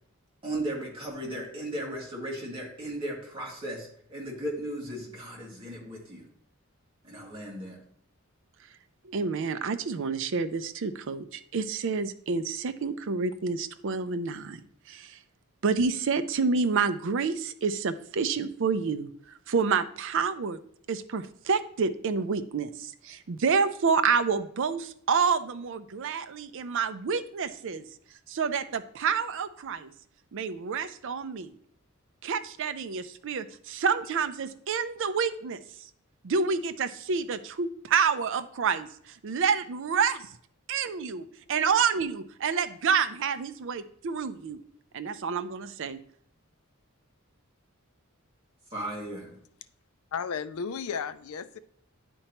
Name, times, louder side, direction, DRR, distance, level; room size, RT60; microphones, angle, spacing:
voice 1, 0.4-6.2 7.0-7.8 48.7-49.4, right 1 dB, 25° right, 2.1 m, -36 dB
voice 2, 9.0-14.6 14.9-15.2 15.6-19.1 19.5-20.6 20.9-27.8 28.3-29.9 30.3-31.5 32.2-35.6 36.2-40.3 40.7-44.6 44.9-46.0, right 5 dB, 65° right, 0.5 m, -28 dB
voice 3, 50.1-51.6, left 6 dB, 90° left, 0.4 m, -33 dB
10.0 x 4.4 x 2.9 m
head